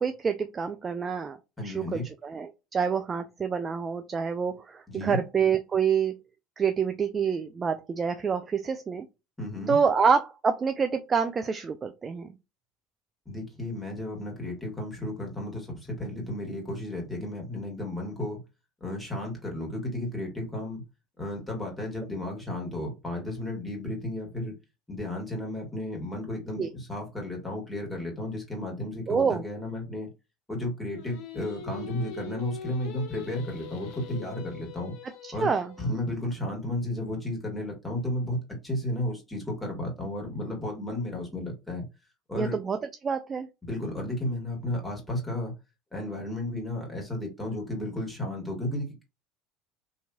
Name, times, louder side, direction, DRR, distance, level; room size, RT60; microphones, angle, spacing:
voice 1, 0.0-1.4 1.6-6.1 6.6-9.1 9.7-12.3 26.5-26.7 29.1-29.4 35.2-35.7 42.4-43.5, right 6 dB, 30° right, 0.3 m, -27 dB
voice 2, 1.6-2.0 4.9-5.2 9.4-9.8 13.2-18.4 18.8-20.8 21.2-24.5 24.9-30.1 30.5-35.0 35.3-35.5 35.8-41.9 42.3-42.6 43.6-45.5 45.9-49.0, left 1 dB, 10° left, 1.6 m, -33 dB
Singing, 30.9-36.1, left 5 dB, 70° left, 0.8 m, -42 dB
2.9 x 2.7 x 2.2 m
hypercardioid pair, 80°, 0 cm